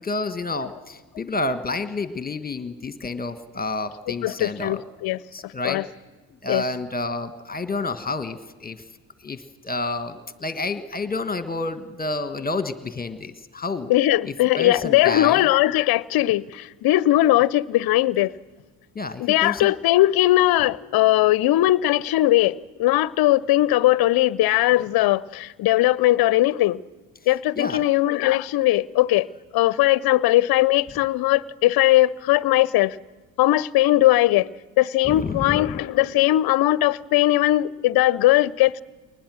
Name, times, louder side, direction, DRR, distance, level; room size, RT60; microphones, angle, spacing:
voice 1, 0.0-4.8 5.3-5.8 6.4-8.8 9.2-13.9 14.3-15.5 18.9-19.7 27.5-27.8 35.0-35.8, left 3 dB, 20° left, 1.5 m, -29 dB
voice 2, 4.1-5.2 5.6-5.8 6.5-6.6 13.9-18.3 19.2-26.8 27.3-29.3 29.5-33.0 33.4-34.5 34.8-38.8, left 15 dB, 50° left, 0.7 m, -19 dB
22.5 x 20.0 x 6.4 m
hypercardioid pair, 60°, 49 cm